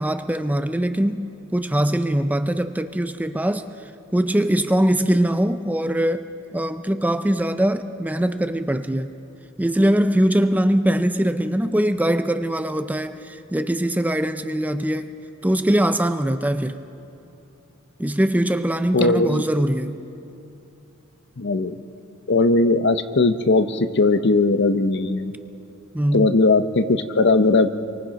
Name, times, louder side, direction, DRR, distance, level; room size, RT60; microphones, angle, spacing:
voice 1, 0.0-3.7 4.1-9.1 9.6-15.1 15.4-16.8 18.0-20.0 25.9-26.4, right 1 dB, 10° right, 9 dB, 0.5 m, -22 dB
voice 2, 18.9-19.4 21.4-21.8 22.3-25.3 26.1-27.8, left 3 dB, 55° left, 10 dB, 0.8 m, -19 dB
27.0 x 24.0 x 5.2 m, 2.8 s
head